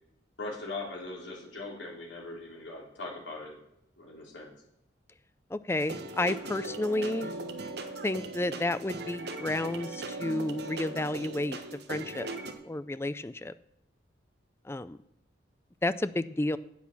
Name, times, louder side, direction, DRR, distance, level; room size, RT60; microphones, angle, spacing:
voice 1, 0.4-3.6 4.0-4.5, left 2 dB, 75° left, -2 dB, 3.7 m, -40 dB
voice 2, 5.5-7.4 8.0-11.6 11.9-12.3 12.6-13.5 14.7-15.0 15.8-16.6, left 2 dB, 15° left, 14 dB, 0.4 m, -31 dB
sound 1, 5.7-12.5, right 2 dB, 55° right, 1.2 m, -39 dB
10.0 x 8.4 x 7.2 m, 0.82 s
head